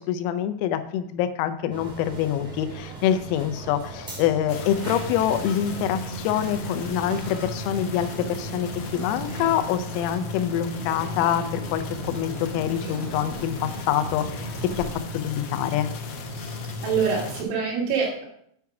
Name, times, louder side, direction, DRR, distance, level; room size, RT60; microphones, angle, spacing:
voice 1, 0.0-14.9 15.1-15.9, left 10 dB, 90° left, 10 dB, 3.4 m, -26 dB
sound 1, 1.7-15.0, right 3 dB, 15° right, 1.7 m, -39 dB
sound 2, 4.5-17.4, left 1 dB, 70° left, 2.7 m, -35 dB
voice 2, 16.8-18.2, right 6 dB, 70° right, -2 dB, 4.3 m, -25 dB
9.3 x 4.7 x 5.9 m, 0.70 s
omnidirectional pair, 5.9 m